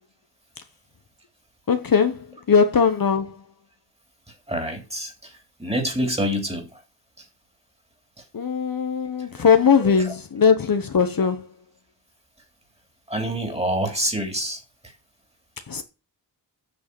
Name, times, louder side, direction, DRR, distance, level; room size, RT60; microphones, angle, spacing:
voice 1, 1.7-3.4 8.3-11.5 15.7-15.8, left 6 dB, 50° left, 1.1 m, -20 dB
voice 2, 4.5-6.8 7.2-7.3 9.3-9.5 9.8-9.9 13.1-14.6, equal, 15° right, 3.3 m, -27 dB
8.8 x 6.4 x 6.9 m
wide cardioid pair, 120°, 42 cm